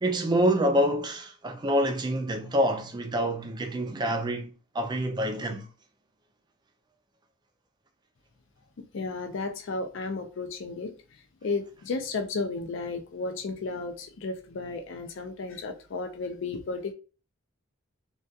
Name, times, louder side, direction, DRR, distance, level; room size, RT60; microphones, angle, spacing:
voice 1, 0.0-5.7, equal, 20° right, 0.3 m, -27 dB
voice 2, 8.8-11.0 11.4-16.9, left 3 dB, 60° left, 0.4 m, -33 dB
2.3 x 2.3 x 2.6 m
head